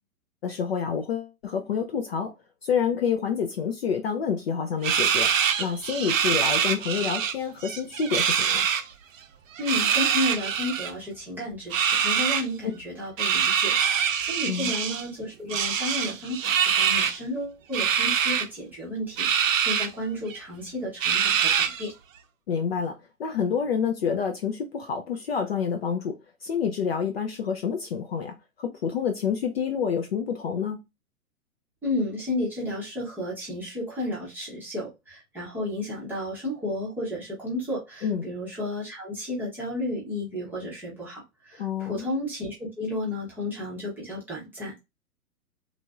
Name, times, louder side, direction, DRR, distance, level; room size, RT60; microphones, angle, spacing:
voice 1, 0.4-2.3 2.6-5.3 5.6-8.7 14.5-14.7 22.5-26.2 26.4-30.8 38.0-38.3 41.6-42.1, left 7 dB, 45° left, 0.4 m, -28 dB
sound 1, 4.8-7.3 7.6-8.8 9.6-10.9 11.7-12.4 13.2-15.1 15.5-17.2 17.7-18.4 19.2-19.9 20.3-20.4 21.0-21.9, right 8 dB, 60° right, 0.6 m, -24 dB
voice 2, 9.6-21.9 31.8-44.8, left 1 dB, 5° right, 0.7 m, -32 dB
3.1 x 2.5 x 2.3 m
hypercardioid pair, 130°, 45 cm